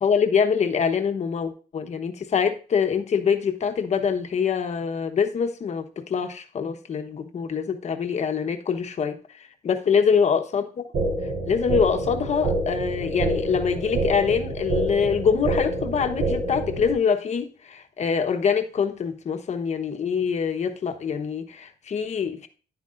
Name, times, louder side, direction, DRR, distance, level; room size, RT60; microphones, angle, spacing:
voice 1, 0.0-10.8 11.4-22.5, left 6 dB, 40° left, 1.1 m, -24 dB
sound 1, 10.9-16.9, right 2 dB, 65° right, 4.5 m, -27 dB
10.5 x 9.6 x 2.5 m
cardioid pair, 165°, 18 cm